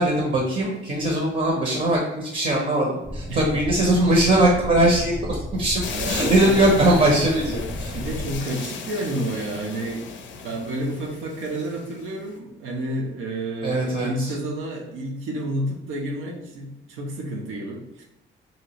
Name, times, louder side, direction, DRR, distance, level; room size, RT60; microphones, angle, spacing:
voice 1, 0.0-7.9 13.6-14.3, right 1 dB, 40° right, -1 dB, 0.7 m, -21 dB
sound 1, 3.0-8.4, equal, 10° right, 0.3 m, -33 dB
sound 2, 5.8-12.1, left 5 dB, 65° left, 0.4 m, -35 dB
voice 2, 5.9-6.8 7.9-18.0, right 1 dB, 85° right, 0 dB, 0.7 m, -30 dB
2.9 x 2.4 x 2.9 m, 0.89 s
cardioid pair, 90°, 20 cm